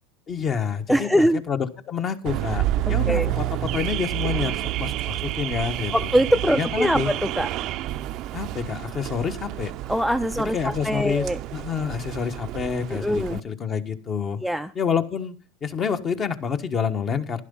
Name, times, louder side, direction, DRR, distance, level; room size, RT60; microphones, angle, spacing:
voice 1, 0.3-6.1 6.5-7.1 8.3-9.7 10.4-14.4 14.7-15.3 15.6-17.4, left 6 dB, 35° left, 8 dB, 1.5 m, -28 dB
voice 2, 0.9-1.4 2.9-3.3 5.9-7.5 9.9-11.4 12.9-13.4 14.4-14.7, equal, ahead, 11 dB, 0.5 m, -23 dB
Car / Alarm, 2.3-13.4, right 15 dB, 50° right, 0.6 m, -29 dB
11.5 x 11.0 x 5.5 m, 0.36 s
hypercardioid pair, 100°, 0 cm